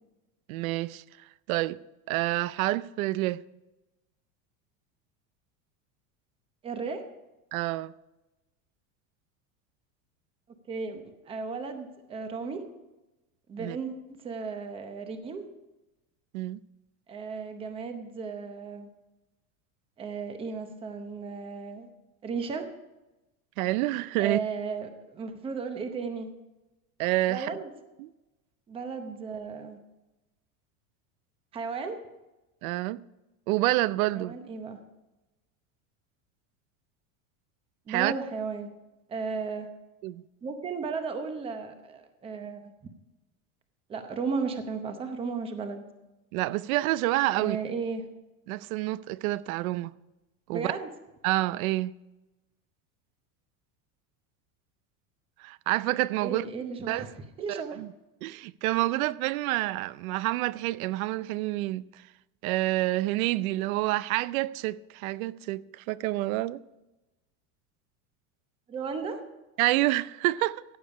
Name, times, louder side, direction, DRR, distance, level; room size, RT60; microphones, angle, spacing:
voice 1, 0.5-1.0 1.5-1.8 2.1-3.4 7.5-7.9 13.6-13.8 16.3-16.6 23.6-24.4 27.0-27.5 28.0-28.1 32.6-33.0 33.5-34.3 37.9-38.1 40.0-40.2 46.3-47.6 48.5-49.9 50.5-50.7 51.2-52.0 55.4-56.4 56.9-57.1 57.4-57.9 58.2-61.9 62.4-66.6 69.6-70.6, right 18 dB, 75° right, 0.6 m, -28 dB
voice 2, 6.6-7.0 10.7-12.6 13.5-14.0 14.2-15.5 17.1-18.9 20.0-21.9 22.2-22.7 24.2-26.3 27.3-27.7 28.7-29.8 31.5-32.0 34.1-34.8 37.9-38.7 39.1-39.7 40.4-42.7 43.9-45.8 47.3-48.0 50.5-50.9 56.2-57.1 57.4-57.8 68.7-69.2, right 5 dB, 15° right, 0.8 m, -34 dB
15.0 x 8.7 x 4.8 m
supercardioid pair, 175°, 42 cm